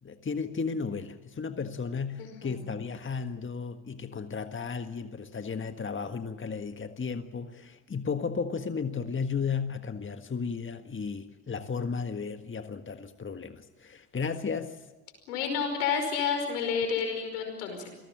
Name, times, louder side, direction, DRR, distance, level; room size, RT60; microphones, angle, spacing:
voice 1, 0.0-14.8, left 5 dB, 25° left, 8 dB, 1.7 m, -34 dB
voice 2, 2.2-2.6 15.3-17.9, left 6 dB, 85° left, 5 dB, 5.3 m, -30 dB
27.5 x 19.5 x 7.5 m, 1.1 s
hypercardioid pair, 55°, 44 cm